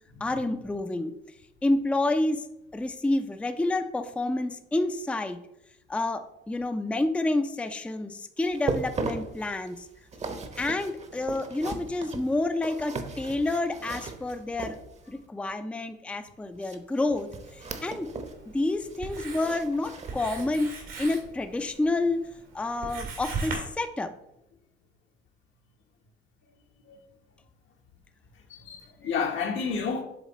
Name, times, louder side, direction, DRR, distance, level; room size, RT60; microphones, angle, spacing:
voice 1, 0.2-1.1 1.6-2.5 2.7-5.4 5.9-9.9 10.6-14.8 15.1-18.1 18.5-22.3 22.5-24.1, left 2 dB, 5° left, 0.4 m, -29 dB
sound 1, 8.5-15.2 16.6-18.4 18.7-20.7 21.1-21.3 21.8-21.9, right 3 dB, 35° right, 0.8 m, -37 dB
Writing, 17.4-23.6, right 4 dB, 85° right, 2.0 m, -40 dB
voice 2, 28.5-30.0, left 5 dB, 75° left, 1.2 m, -30 dB
7.2 x 3.6 x 4.1 m
cardioid pair, 90°, 20 cm